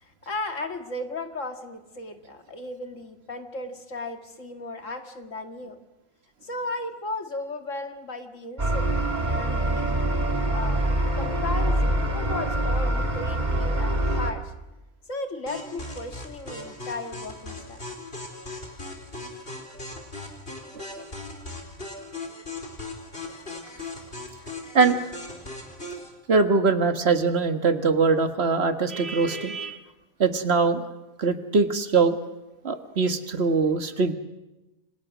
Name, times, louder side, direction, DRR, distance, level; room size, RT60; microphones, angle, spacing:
voice 1, 0.0-5.8 6.4-8.9 9.3-10.0 10.5-10.8 11.2-14.5 15.1-17.8, left 2 dB, 65° left, 6 dB, 2.4 m, -35 dB
sound 1, 8.6-14.3, right 1 dB, 30° right, 2.5 m, -25 dB
sound 2, 15.5-26.1, left 2 dB, 40° left, 4.8 m, -38 dB
voice 2, 26.3-29.8 30.2-30.8 31.2-32.2 32.6-34.1, right 4 dB, 50° right, 8 dB, 1.8 m, -22 dB
29.5 x 26.0 x 6.2 m, 1.0 s
omnidirectional pair, 1.4 m